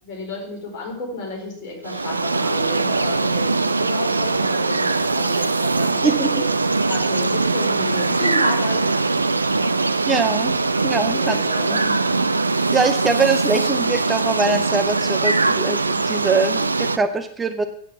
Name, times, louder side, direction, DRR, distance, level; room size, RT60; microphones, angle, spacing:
voice 1, 0.0-6.4 6.9-8.8 9.5-9.7 10.9-12.2, left 3 dB, 40° left, -1 dB, 4.4 m, -32 dB
sound 1, 1.8-17.0, right 3 dB, 80° right, 0.4 m, -21 dB
voice 2, 10.1-10.6 10.8-11.4 11.7-11.8 12.7-17.6, right 4 dB, 15° right, 8 dB, 0.6 m, -22 dB
9.0 x 7.7 x 7.2 m, 0.69 s
figure-of-eight pair, 90°, 0 cm